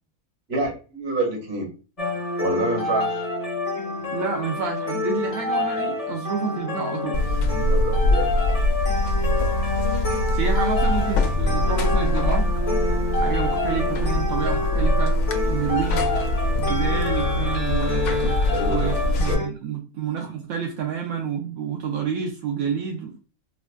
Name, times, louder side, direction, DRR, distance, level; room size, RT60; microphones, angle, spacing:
voice 1, 0.5-1.7 2.4-3.3 7.7-8.4 18.5-19.4, right 2 dB, 45° right, -1 dB, 1.5 m, -28 dB
sound 1, 2.0-19.5, left 3 dB, 30° left, 0.7 m, -27 dB
voice 2, 4.1-7.2 10.3-12.5 13.2-15.2 15.5-16.2 16.6-18.4 18.7-23.2, right 7 dB, 80° right, 2 dB, 1.0 m, -29 dB
Buzz, 7.1-19.3, left 1 dB, 70° left, 1.0 m, -23 dB
4.7 x 2.4 x 2.2 m, 0.34 s
omnidirectional pair, 1.5 m